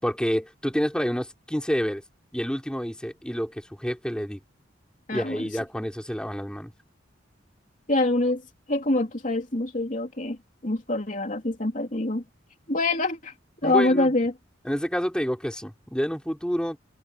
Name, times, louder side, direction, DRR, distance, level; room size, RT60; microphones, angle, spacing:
voice 1, 0.0-2.0 2.3-4.4 5.1-6.7 13.6-14.1 14.6-16.8, equal, 5° left, 4.2 m, -28 dB
voice 2, 5.1-5.5 7.9-8.4 8.7-10.4 10.6-12.2 12.7-13.3 13.6-14.3, left 2 dB, 45° left, 3.1 m, -25 dB
head